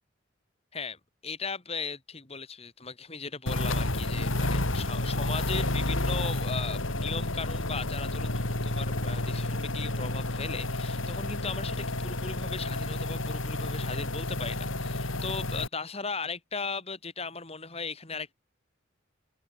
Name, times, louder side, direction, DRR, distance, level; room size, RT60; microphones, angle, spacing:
voice 1, 0.7-18.3, left 4 dB, 30° left, 2.6 m, -37 dB
sound 1, 3.5-15.7, left 2 dB, 85° left, 3.3 m, -30 dB
head